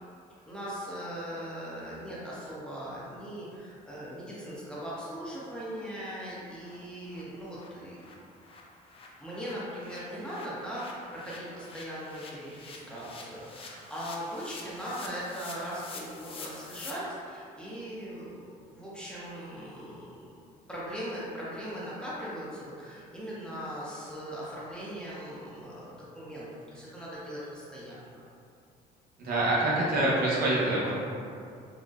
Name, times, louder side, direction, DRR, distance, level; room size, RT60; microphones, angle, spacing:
voice 1, 0.5-8.1 9.2-20.3 20.7-28.2, equal, 5° left, -9 dB, 0.7 m, -39 dB
sound 1, 3.9-4.0 4.4-4.5 4.8-4.9 5.3-5.4 5.7-5.8 6.1-6.3 6.6-6.8 7.0-16.9, left 4 dB, 35° left, 0.4 m, -48 dB
voice 2, 29.2-30.9, right 1 dB, 60° right, -6 dB, 0.8 m, -26 dB
4.0 x 2.1 x 2.3 m, 2.4 s
cardioid pair, 110°, 17 cm